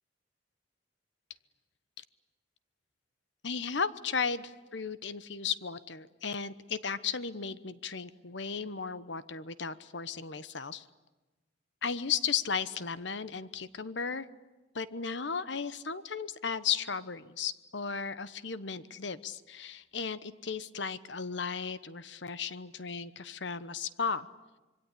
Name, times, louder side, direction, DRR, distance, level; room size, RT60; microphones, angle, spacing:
voice 1, 3.4-10.9 11.8-14.3 14.7-24.3, left 6 dB, 65° left, 15 dB, 1.1 m, -35 dB
26.0 x 23.0 x 9.9 m, 1.1 s
head